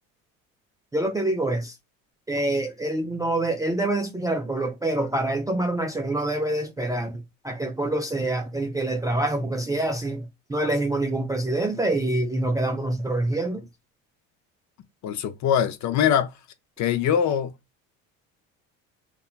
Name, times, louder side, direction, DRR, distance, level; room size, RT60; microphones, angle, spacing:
voice 1, 0.9-1.7 2.3-13.6, right 2 dB, 10° right, 0.3 m, -26 dB
voice 2, 15.0-16.3 16.8-17.5, left 9 dB, 50° left, 0.6 m, -22 dB
2.7 x 2.3 x 2.4 m
supercardioid pair, 85°, 38 cm